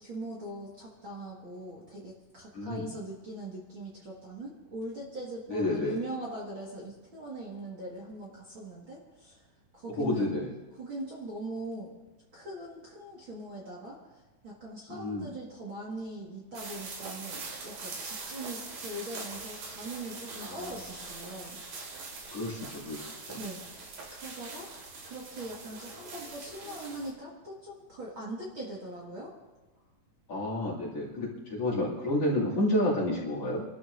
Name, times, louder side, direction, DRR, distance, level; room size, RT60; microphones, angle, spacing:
voice 1, 0.0-9.4 9.7-10.4 10.8-11.9 12.3-14.0 14.4-21.6 23.4-23.6 24.1-29.3, right 1 dB, 40° right, -5 dB, 2.1 m, -41 dB
voice 2, 2.5-2.9 5.5-6.0 9.9-10.5 14.9-15.3 20.4-20.8 22.3-23.0 23.3-23.4 30.3-33.6, left 1 dB, 45° left, -3 dB, 3.3 m, -30 dB
sound 1, 16.5-27.1, right 3 dB, 70° right, 4.1 m, -43 dB
28.5 x 12.5 x 2.7 m, 1.2 s
omnidirectional pair, 4.2 m